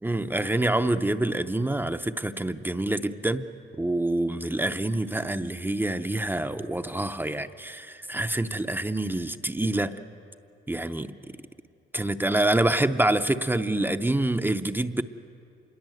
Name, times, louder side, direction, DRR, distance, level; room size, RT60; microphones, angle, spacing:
voice 1, 0.0-3.5 3.8-10.0 10.7-11.4 11.9-15.0, right 1 dB, 10° right, 9 dB, 0.7 m, -26 dB
26.5 x 21.5 x 7.8 m, 2.5 s
cardioid pair, 90°, 20 cm